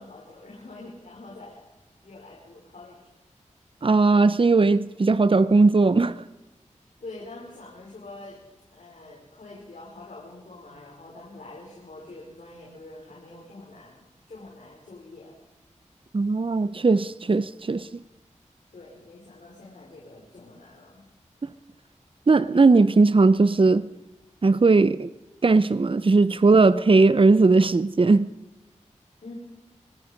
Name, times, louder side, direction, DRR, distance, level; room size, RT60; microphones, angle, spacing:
voice 1, 0.0-1.6 2.0-3.0 7.0-8.4 8.7-15.3 18.7-21.0 29.2-29.3, left 2 dB, 75° left, 5.6 m, -45 dB
voice 2, 3.8-6.2 16.1-18.0 22.3-23.9 24.4-25.1 25.4-28.3, right 3 dB, 45° right, 0.8 m, -18 dB
25.5 x 20.0 x 5.4 m
cardioid pair, 45°, 13 cm